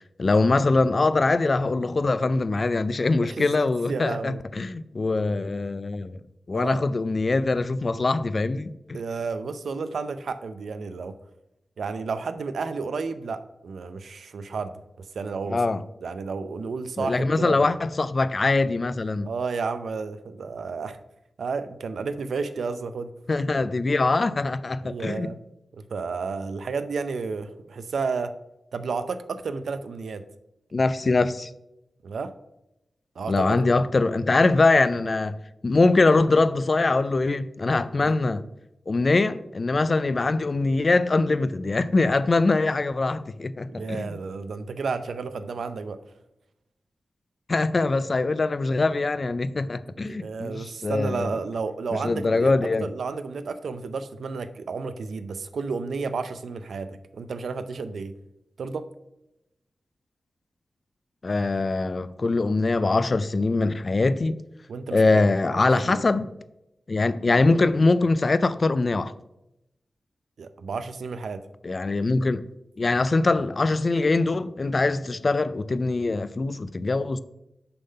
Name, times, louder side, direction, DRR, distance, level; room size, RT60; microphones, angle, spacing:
voice 1, 0.2-6.2 6.5-9.0 15.5-15.8 17.0-19.3 23.3-25.3 30.7-31.5 33.3-35.4 35.6-38.4 38.9-44.2 47.5-51.3 52.0-52.9 61.2-64.4 64.9-66.3 66.9-69.1 71.6-72.5 72.8-77.2, left 3 dB, 35° left, 0.4 m, -23 dB
voice 2, 3.3-4.4 6.5-6.8 8.9-11.1 11.8-15.6 16.0-17.7 19.2-21.0 21.4-23.1 24.8-25.4 25.7-28.3 28.7-30.2 32.0-32.3 33.2-33.6 38.0-38.2 43.7-46.0 50.1-52.5 52.8-58.1 58.6-58.9 64.7-65.2 65.6-66.0 70.4-71.4, right 4 dB, 90° right, 0.5 m, -32 dB
6.7 x 5.6 x 5.4 m
wide cardioid pair, 150°, 0 cm